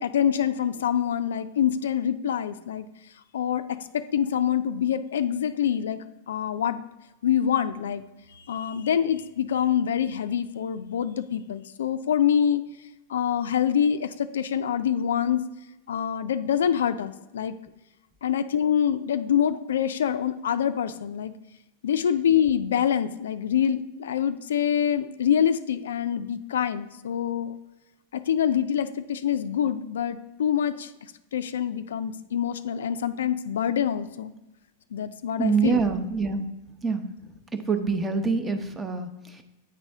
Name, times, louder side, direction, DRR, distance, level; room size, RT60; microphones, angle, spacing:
voice 1, 0.0-2.9 3.3-6.0 6.3-6.8 7.2-8.0 8.3-12.6 13.1-15.5 15.9-17.6 18.2-21.3 21.8-27.6 28.1-30.9 31.3-34.3 34.9-35.8, left 9 dB, 80° left, 12 dB, 0.3 m, -25 dB
voice 2, 35.4-36.5 36.8-37.1 37.5-39.4, right 4 dB, 15° right, 8 dB, 0.7 m, -25 dB
8.7 x 4.2 x 3.4 m, 0.99 s
hypercardioid pair, 105°, 0 cm